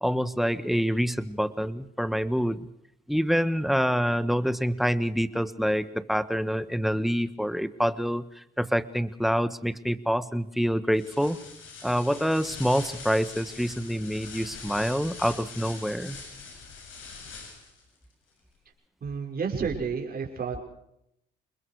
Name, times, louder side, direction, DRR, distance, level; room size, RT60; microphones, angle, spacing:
voice 1, 0.0-2.7 3.1-11.4 11.8-16.2, equal, ahead, 12 dB, 1.4 m, -26 dB
sound 1, 10.9-17.8, left 5 dB, 80° left, 7.5 m, -43 dB
voice 2, 19.0-20.6, right 5 dB, 50° right, 2 dB, 6.1 m, -30 dB
28.5 x 21.0 x 4.8 m, 0.78 s
cardioid pair, 90°, 20 cm